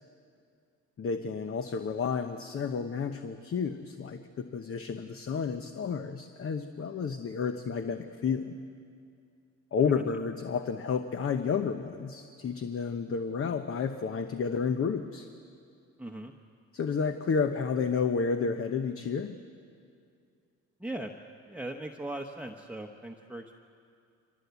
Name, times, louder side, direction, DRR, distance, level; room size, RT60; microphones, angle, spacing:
voice 1, 1.0-8.5 9.7-15.3 16.7-19.4, left 5 dB, 45° left, 8 dB, 1.0 m, -31 dB
voice 2, 16.0-16.3 20.8-21.1 21.5-23.6, right 1 dB, 5° right, 1 dB, 1.0 m, -39 dB
24.0 x 19.0 x 8.2 m, 2.5 s
cardioid pair, 90°, 30 cm